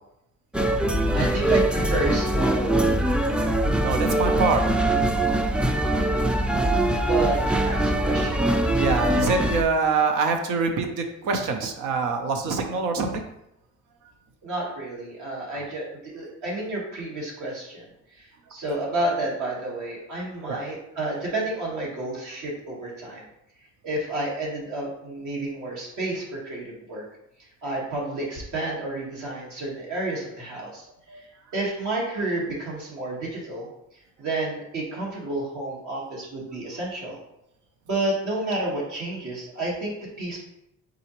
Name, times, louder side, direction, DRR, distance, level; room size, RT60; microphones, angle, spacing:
sound 1, 0.5-9.6, right 1 dB, 5° right, 0.3 m, -22 dB
voice 1, 1.1-3.3 7.1-9.1 14.4-23.3 23.8-27.0 27.4-30.8 31.1-31.3 31.5-33.7 34.2-37.2 37.9-40.4, right 2 dB, 75° right, -4 dB, 1.5 m, -30 dB
voice 2, 3.8-4.6 8.8-13.2 20.5-20.6 31.1-31.2, right 4 dB, 90° right, 5 dB, 0.7 m, -25 dB
4.1 x 3.8 x 2.9 m, 0.79 s
cardioid pair, 90°, 30 cm